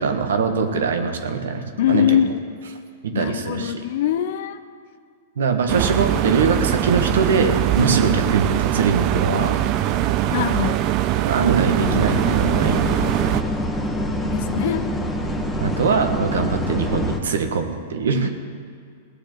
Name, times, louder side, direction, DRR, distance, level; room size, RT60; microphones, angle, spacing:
voice 1, 0.0-2.0 3.0-3.8 5.4-9.5 11.2-12.9 15.6-18.3, right 5 dB, 70° right, 6 dB, 1.5 m, -22 dB
voice 2, 1.8-2.4 3.1-4.6 7.8-8.0 10.3-10.9 14.3-14.9 18.1-18.3, left 9 dB, 60° left, 12 dB, 0.8 m, -22 dB
sound 1, 5.7-13.4, right 13 dB, 40° right, 0.7 m, -22 dB
sound 2, 11.8-17.2, equal, 10° left, 1.7 m, -25 dB
18.5 x 6.8 x 7.8 m, 2.2 s
hypercardioid pair, 105°, 0 cm